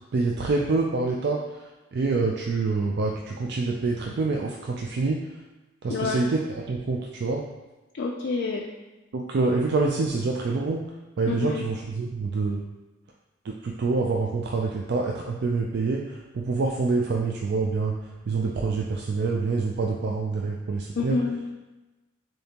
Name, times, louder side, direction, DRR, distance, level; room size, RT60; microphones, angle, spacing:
voice 1, 0.1-1.4 1.9-5.2 5.8-7.4 9.1-10.8 11.2-12.6 13.4-18.0 18.3-21.2, right 3 dB, 55° right, 0 dB, 0.4 m, -26 dB
voice 2, 5.9-6.2 8.0-8.7 11.3-11.6 21.0-21.6, left 4 dB, 55° left, 1 dB, 0.4 m, -28 dB
6.7 x 2.8 x 2.8 m, 1.1 s
head